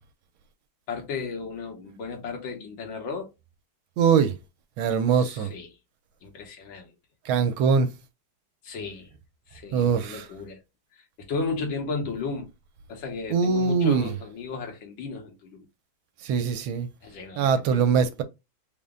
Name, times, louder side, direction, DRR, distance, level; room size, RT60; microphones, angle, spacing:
voice 1, 0.9-3.3 5.1-5.7 6.2-6.9 8.6-9.1 9.5-10.6 10.9-12.5 12.9-15.7 17.0-17.8, left 4 dB, 70° left, 1.7 m, -34 dB
voice 2, 4.0-4.4 4.8-5.5 7.3-7.9 9.7-10.2 13.3-14.1 16.2-16.9 17.4-18.2, right 6 dB, 80° right, 1.4 m, -22 dB
3.8 x 2.1 x 3.5 m
omnidirectional pair, 2.3 m